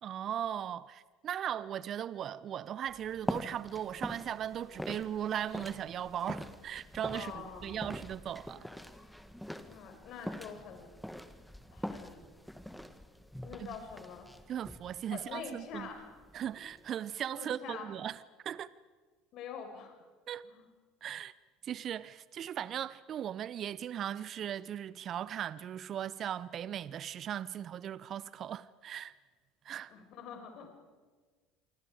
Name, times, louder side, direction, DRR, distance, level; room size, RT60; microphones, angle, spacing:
voice 1, 0.0-8.7 13.6-13.7 14.5-15.9 16.3-18.7 20.3-20.4 21.0-21.3 21.6-29.1 29.6-29.9, right 10 dB, 45° right, 0.7 m, -38 dB
sound 1, 2.9-16.9, equal, ahead, 1.8 m, -44 dB
voice 2, 7.1-7.8 9.6-10.9 11.7-12.2 13.4-14.3 15.1-16.1 17.3-17.9 19.3-19.9 20.4-20.7 29.9-30.7, left 6 dB, 55° left, 5.4 m, -45 dB
27.5 x 24.5 x 5.1 m
hypercardioid pair, 70°, 0 cm